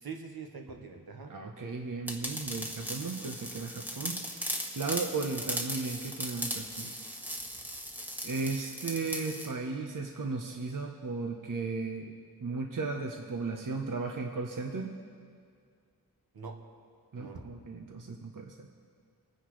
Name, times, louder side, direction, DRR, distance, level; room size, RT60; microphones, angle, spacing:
voice 1, 0.0-1.3 16.3-16.6 17.2-17.5, right 5 dB, 75° right, 3 dB, 1.3 m, -43 dB
voice 2, 1.3-6.9 8.2-12.1 12.4-15.0 17.1-18.7, right 4 dB, 55° right, 3 dB, 1.0 m, -35 dB
sound 1, 2.1-9.5, equal, 5° right, 1.3 m, -38 dB
24.5 x 9.8 x 3.2 m, 2.1 s
wide cardioid pair, 85°, 37 cm